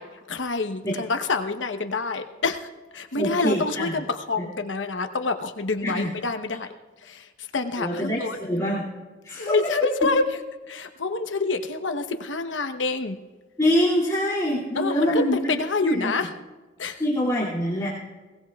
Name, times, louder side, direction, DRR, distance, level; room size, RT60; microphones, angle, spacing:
voice 1, 0.0-8.4 9.3-10.4 10.7-13.2 14.7-16.3 16.8-17.0, left 3 dB, 85° left, 7 dB, 0.9 m, -27 dB
voice 2, 3.2-3.9 4.4-4.5 5.8-6.1 7.8-8.8 9.2-9.7 13.6-15.5 15.8-16.1 17.0-17.9, equal, 20° left, -9 dB, 2.4 m, -24 dB
21.5 x 18.0 x 2.3 m, 1.3 s
head